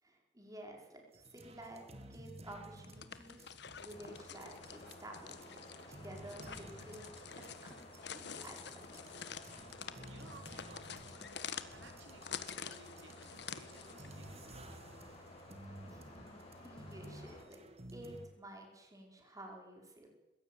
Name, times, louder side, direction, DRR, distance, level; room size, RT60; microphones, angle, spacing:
voice 1, 0.0-3.4 3.8-5.6 5.9-7.1 7.6-9.0 15.9-17.6 17.9-20.1, right 1 dB, 20° right, 1 dB, 5.0 m, -52 dB
sound 1, 1.1-18.3, right 1 dB, 35° right, 2.1 m, -55 dB
sound 2, 2.7-14.1, left 7 dB, 65° left, 1.4 m, -48 dB
Box Fan, 3.9-17.4, left 1 dB, 35° left, 7.1 m, -55 dB
voice 2, 9.8-15.2, right 2 dB, 80° right, 5 dB, 3.0 m, -59 dB
20.5 x 16.5 x 9.4 m, 1.1 s
head